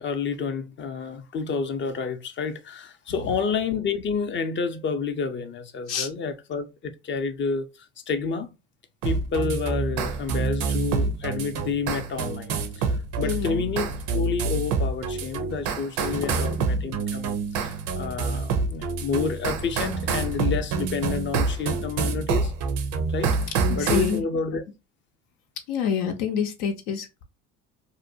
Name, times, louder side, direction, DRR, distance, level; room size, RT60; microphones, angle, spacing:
voice 1, 0.0-7.7 8.1-8.5 9.0-12.9 13.2-13.9 14.1-22.5 23.1-23.4 23.8-24.6, left 5 dB, 30° left, 0.5 m, -29 dB
sound 1, 9.0-24.2, right 4 dB, 60° right, 0.7 m, -27 dB
voice 2, 13.2-13.6 16.1-16.6 23.7-24.2 25.7-27.2, left 7 dB, 75° left, 0.6 m, -27 dB
2.6 x 2.1 x 2.6 m
hypercardioid pair, 75°, 37 cm